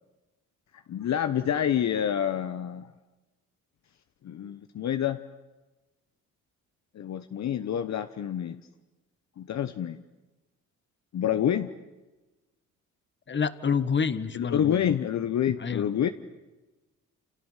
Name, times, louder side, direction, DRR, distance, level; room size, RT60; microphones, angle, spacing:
voice 1, 0.9-2.9 4.2-5.2 6.9-8.6 9.4-10.0 11.1-11.7 14.3-16.1, left 9 dB, 55° left, 9 dB, 1.2 m, -27 dB
voice 2, 13.3-14.8 15.6-15.9, left 6 dB, 35° left, 13 dB, 1.7 m, -28 dB
29.0 x 28.0 x 7.4 m, 1.1 s
cardioid pair, 90°, 32 cm